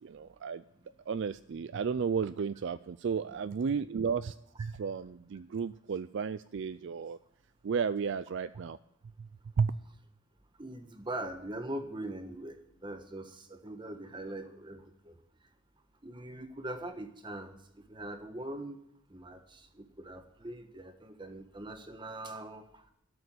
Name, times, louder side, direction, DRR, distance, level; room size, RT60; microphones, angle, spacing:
voice 1, 0.0-0.6 1.1-7.2 7.6-8.8 9.2-9.3 9.6-9.7, right 6 dB, 55° right, 13 dB, 0.4 m, -33 dB
voice 2, 10.6-12.6 12.8-15.1 16.0-17.6 17.9-18.8 19.1-22.6, right 1 dB, 20° right, 7 dB, 1.3 m, -42 dB
13.0 x 6.8 x 8.5 m, 0.78 s
head